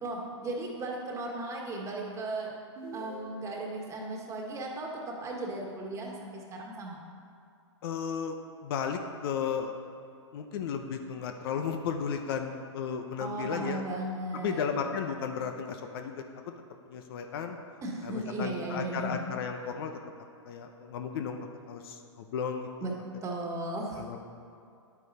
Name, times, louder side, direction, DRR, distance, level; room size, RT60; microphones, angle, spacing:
voice 1, 0.0-2.5 2.9-7.0 13.2-14.7 17.8-19.2 22.8-22.9 23.2-24.1, right 2 dB, 20° right, 0 dB, 1.7 m, -36 dB
sound 1, 2.8-3.8, right 3 dB, 45° right, 1.6 m, -45 dB
voice 2, 7.8-8.4 8.6-9.7 10.3-13.8 14.3-16.2 16.9-17.6 18.0-19.9 20.5-21.4 21.7-22.7 24.0-24.2, left 7 dB, 50° left, 5 dB, 0.9 m, -34 dB
10.5 x 8.9 x 4.2 m, 2.5 s
hypercardioid pair, 125°, 16 cm